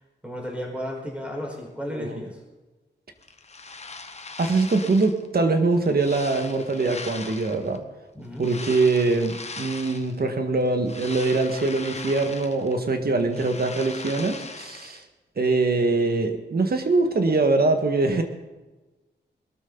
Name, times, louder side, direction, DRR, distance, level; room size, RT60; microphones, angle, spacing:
voice 1, 0.2-2.4 8.1-8.5, equal, 5° right, -1 dB, 4.9 m, -33 dB
voice 2, 1.9-2.2 4.4-7.8 8.4-15.0 15.4-18.2, right 3 dB, 60° right, 6 dB, 1.8 m, -23 dB
sound 1, 3.2-5.3 5.7-7.8 8.4-10.2 10.6-12.8 13.1-15.0, left 3 dB, 35° left, 1.1 m, -39 dB
21.5 x 13.0 x 4.0 m, 1.2 s
wide cardioid pair, 125°, 18 cm